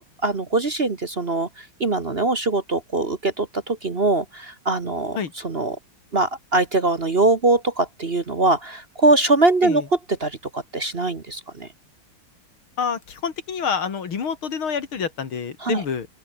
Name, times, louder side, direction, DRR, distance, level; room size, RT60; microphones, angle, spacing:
voice 1, 0.0-1.5 1.8-5.2 5.4-5.8 6.1-9.8 10.2-11.7 15.6-15.8, right 2 dB, 30° right, 1.4 m, -22 dB
voice 2, 12.8-16.1, left 6 dB, 85° left, 3.2 m, -27 dB
open air
omnidirectional pair, 2.3 m